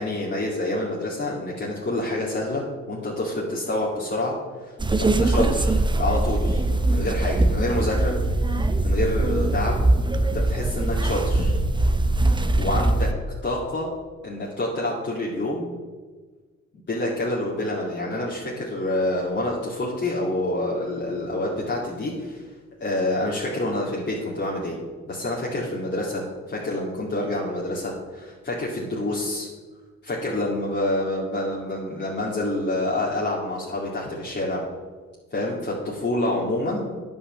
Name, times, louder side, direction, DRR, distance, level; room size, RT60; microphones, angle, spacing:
voice 1, 0.0-8.2 8.5-9.8 10.2-11.6 12.2-13.1 13.4-13.9 14.2-15.7 16.9-22.4 22.8-24.8 25.1-29.5 30.0-34.6 35.3-37.0, left 1 dB, 35° left, -6 dB, 2.5 m, -27 dB
sound 1, 4.8-13.1, right 2 dB, 15° right, 0.8 m, -22 dB
9.8 x 5.7 x 7.6 m, 1.4 s
cardioid pair, 90°, 30 cm